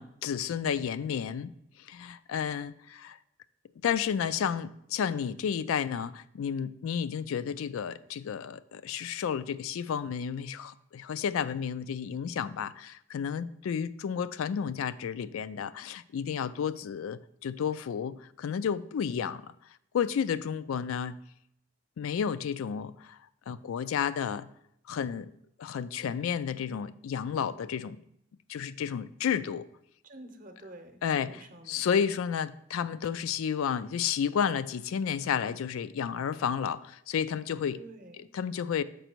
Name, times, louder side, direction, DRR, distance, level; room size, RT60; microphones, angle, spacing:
voice 1, 0.0-1.5 1.9-3.2 3.8-19.5 19.9-21.2 22.0-23.2 23.5-24.5 24.9-25.3 25.6-28.0 28.5-29.6 31.0-37.8 38.2-38.8, left 7 dB, 80° left, 14 dB, 0.3 m, -31 dB
voice 2, 30.0-31.9 37.7-38.3, right 2 dB, 40° right, 6 dB, 0.7 m, -49 dB
6.7 x 5.0 x 4.5 m, 0.74 s
head